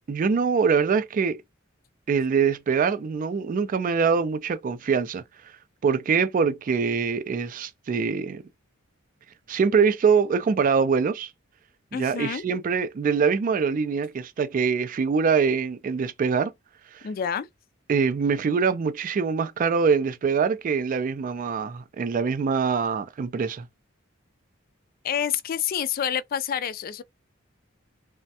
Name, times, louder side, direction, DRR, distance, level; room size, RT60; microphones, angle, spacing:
voice 1, 0.1-1.4 2.1-5.2 5.8-8.4 9.5-11.3 11.9-16.5 16.9-17.1 17.9-23.6, right 5 dB, 40° right, 0.3 m, -24 dB
voice 2, 11.9-12.4 17.0-17.5 25.0-27.0, left 8 dB, 45° left, 0.3 m, -28 dB
3.3 x 2.1 x 2.7 m
head